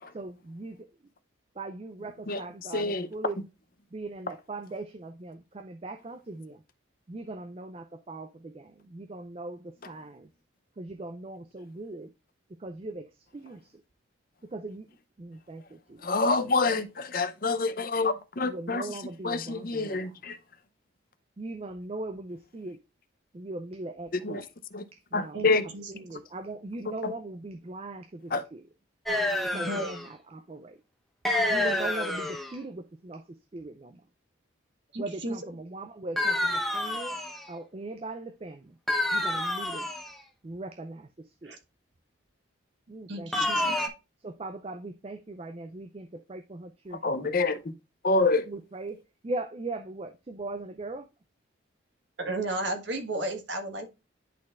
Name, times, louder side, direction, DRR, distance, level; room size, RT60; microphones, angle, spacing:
voice 1, 0.1-0.8 1.6-3.4 3.9-6.6 7.1-10.3 10.8-12.1 12.6-13.1 13.3-13.6 14.5-14.9 15.2-16.0 18.4-20.1 21.4-22.8 23.3-24.4 25.1-25.4 26.1-28.6 29.5-30.8 31.5-34.0 35.0-37.1 37.5-38.7 39.1-39.9 40.4-41.1 41.4-41.5 42.9-43.3 43.6-43.7 44.2-47.3 48.5-49.0 49.2-51.1, right 2 dB, 30° right, 0.4 m, -39 dB
voice 2, 2.3-3.1 16.0-20.4 24.1-24.5 24.7-24.8 25.1-25.6 26.8-27.1 28.3-28.4 46.9-47.7 48.0-48.5, left 3 dB, 45° left, 0.6 m, -27 dB
sound 1, 29.1-30.1 31.2-32.5 36.2-37.5 38.9-40.2 43.3-43.9, left 1 dB, ahead, 0.8 m, -28 dB
voice 3, 29.5-29.9 34.9-35.4 41.4-41.6 43.1-43.9 52.2-53.9, right 2 dB, 60° right, 1.5 m, -33 dB
10.5 x 4.1 x 2.4 m
head